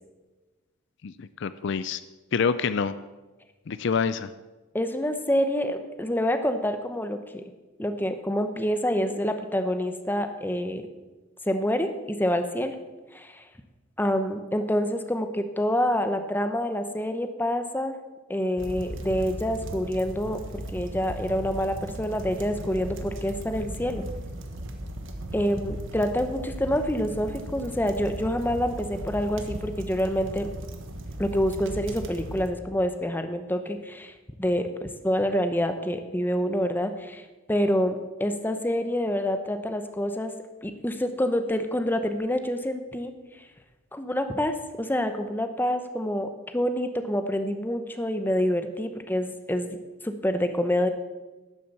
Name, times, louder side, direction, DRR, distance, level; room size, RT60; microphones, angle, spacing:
voice 1, 1.0-2.0 2.3-3.0 3.7-4.3, left 5 dB, 60° left, 14 dB, 0.4 m, -26 dB
voice 2, 4.7-7.4 7.8-10.8 11.4-12.8 13.1-13.4 14.0-18.0 18.3-24.0 25.3-30.5 31.2-34.1 34.4-37.2 37.5-40.3 40.6-43.1 43.9-49.8 50.0-50.9, equal, 10° left, 7 dB, 0.8 m, -27 dB
sound 1, 18.6-32.5, right 1 dB, 70° right, 1.4 m, -37 dB
12.0 x 7.6 x 7.0 m, 1.2 s
head